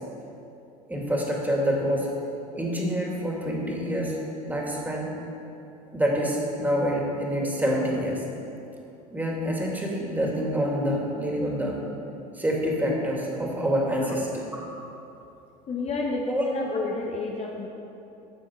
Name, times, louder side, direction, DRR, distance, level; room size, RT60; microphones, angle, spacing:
voice 1, 0.9-2.1 2.5-4.2 4.5-5.1 5.9-8.2 9.1-11.8 12.3-14.5 16.3-16.4, equal, 10° right, -2 dB, 2.7 m, -26 dB
voice 2, 15.7-17.7, left 3 dB, 35° left, -1 dB, 1.2 m, -30 dB
13.0 x 7.0 x 4.6 m, 2.8 s
hypercardioid pair, 75°, 19 cm